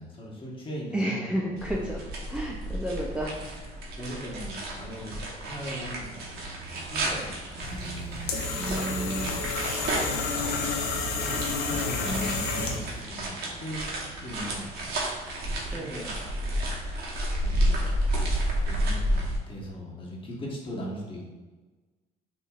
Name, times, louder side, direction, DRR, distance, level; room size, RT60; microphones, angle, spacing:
voice 1, 0.0-1.5 4.0-8.0 8.9-9.0 11.0-12.5 13.1-13.9 14.2-14.7 15.7-16.1 16.4-16.6 17.4-18.0 18.6-21.2, equal, 30° left, -3 dB, 1.2 m, -39 dB
voice 2, 0.9-3.5 7.7-9.4 12.0-12.5 15.7-16.1, right 1 dB, 5° right, -3 dB, 0.4 m, -33 dB
sound 1, 1.6-19.4, right 1 dB, 70° right, 1.1 m, -31 dB
sound 2, 7.6-13.0, left 3 dB, 75° left, 0.7 m, -30 dB
5.7 x 2.9 x 2.4 m, 1.3 s
cardioid pair, 110°, 17 cm